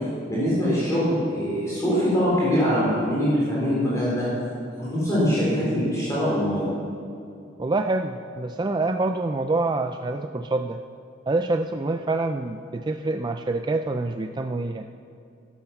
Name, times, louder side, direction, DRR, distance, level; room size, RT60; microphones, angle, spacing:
voice 1, 0.3-4.3 4.8-6.7, equal, 15° left, -8 dB, 3.7 m, -23 dB
voice 2, 7.6-10.8 11.3-14.9, right 2 dB, 20° right, 6 dB, 0.3 m, -26 dB
13.0 x 12.0 x 5.8 m, 2.5 s
head